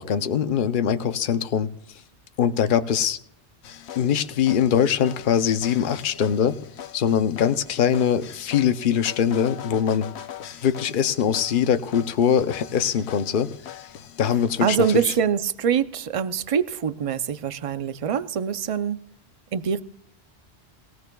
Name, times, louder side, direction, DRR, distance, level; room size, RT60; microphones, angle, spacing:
voice 1, 0.0-1.7 2.4-3.2 4.0-6.6 6.9-10.1 10.6-13.9 14.2-15.1, left 8 dB, 55° left, 0.8 m, -22 dB
sound 1, 3.6-15.2, left 10 dB, 80° left, 1.0 m, -41 dB
voice 2, 14.6-19.0 19.5-19.8, right 7 dB, 40° right, 0.5 m, -24 dB
21.0 x 16.0 x 2.3 m
omnidirectional pair, 1.1 m